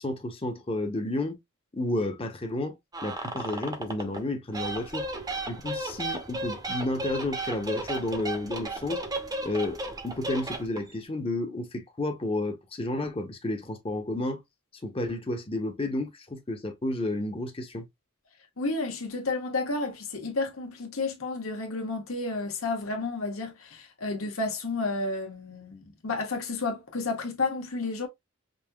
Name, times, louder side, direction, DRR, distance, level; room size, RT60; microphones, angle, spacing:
voice 1, 0.0-1.4 1.7-2.8 3.0-5.0 5.5-9.0 9.4-14.4 14.8-17.9, left 2 dB, 25° left, 0.8 m, -31 dB
sound 1, 2.9-4.2 4.5-11.0, right 2 dB, 20° right, 0.7 m, -34 dB
voice 2, 18.6-28.1, left 3 dB, 80° left, 1.3 m, -31 dB
5.3 x 2.8 x 2.2 m
head